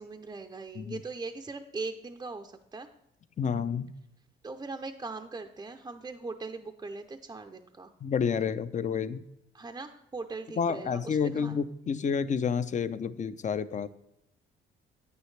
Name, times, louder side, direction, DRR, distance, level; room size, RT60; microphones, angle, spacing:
voice 1, 0.0-2.9 4.4-7.9 9.5-11.6, right 3 dB, 20° right, 4 dB, 0.5 m, -40 dB
voice 2, 3.4-3.9 8.0-9.2 10.6-13.9, left 6 dB, 40° left, 14 dB, 0.5 m, -29 dB
9.6 x 8.6 x 3.2 m, 0.83 s
cardioid pair, 90°, 20 cm